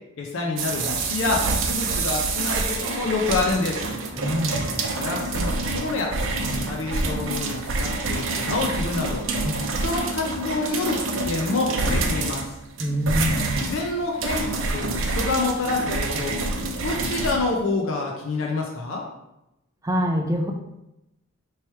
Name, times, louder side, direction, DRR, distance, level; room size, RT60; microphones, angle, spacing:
voice 1, 0.2-3.9 4.9-6.2 6.5-9.2 9.8-12.5 13.6-16.4 16.8-19.1, left 3 dB, 65° left, 0 dB, 0.5 m, -27 dB
sound 1, 0.6-17.4, right 3 dB, 65° right, 0.6 m, -27 dB
voice 2, 4.2-4.6 6.4-6.5 9.4-9.6 12.8-13.6 19.8-20.5, equal, 15° right, 1 dB, 0.4 m, -25 dB
3.2 x 3.0 x 4.5 m, 0.90 s
head